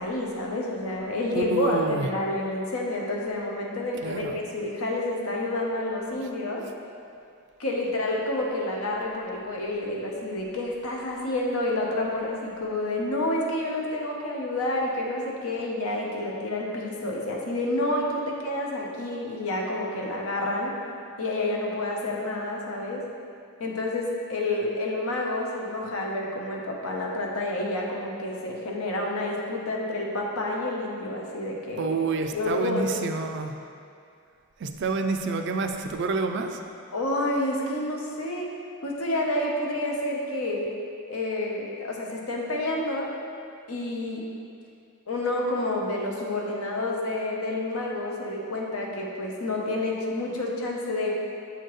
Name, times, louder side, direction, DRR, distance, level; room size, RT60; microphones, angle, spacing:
voice 1, 0.0-6.6 7.6-20.7 21.2-23.0 23.6-31.9 32.3-32.8 36.9-38.5 38.8-40.7 41.1-43.1 43.7-44.2 45.1-51.1, left 1 dB, 75° left, -1 dB, 0.8 m, -29 dB
voice 2, 1.3-2.1 4.0-4.4 31.8-33.6 34.6-36.6, right 3 dB, 50° right, 5 dB, 0.3 m, -28 dB
7.0 x 4.4 x 3.1 m, 2.4 s
head